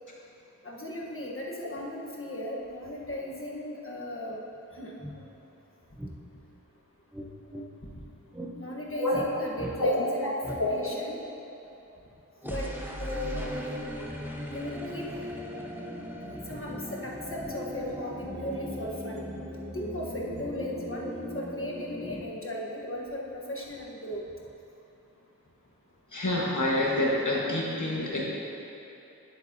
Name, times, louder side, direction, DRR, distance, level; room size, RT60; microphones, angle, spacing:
voice 1, 0.6-4.4 4.7-4.9 7.9-8.0 8.5-11.2 12.4-12.7 13.0-13.8 14.5-15.1 16.5-19.2 19.7-24.2, left 1 dB, 40° left, -3 dB, 1.3 m, -37 dB
sound 1, 4.6-4.7 5.0-5.2 6.0-6.2 7.1-7.7 8.3-8.5 9.1-9.3 9.6-9.8 10.4-10.6 12.4-22.2, equal, 5° right, 0.9 m, -38 dB
voice 2, 9.8-10.7 26.1-28.3, left 1 dB, 65° left, -4 dB, 1.6 m, -27 dB
10.0 x 8.2 x 2.8 m, 3.0 s
wide cardioid pair, 45°, 32 cm